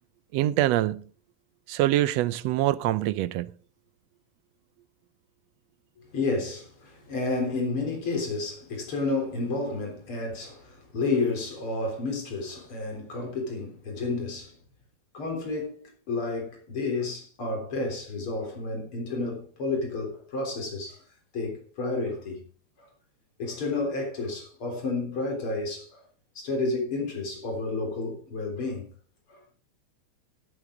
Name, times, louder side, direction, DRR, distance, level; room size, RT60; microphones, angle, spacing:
voice 1, 0.3-1.0 1.7-3.5, right 14 dB, 75° right, 1.6 m, -24 dB
voice 2, 6.1-14.5 15.1-21.0 21.3-22.5 22.8-22.9 23.4-26.0 26.4-28.9 29.3-29.4, left 3 dB, 45° left, 4.4 m, -31 dB
15.0 x 8.5 x 3.8 m
omnidirectional pair, 3.4 m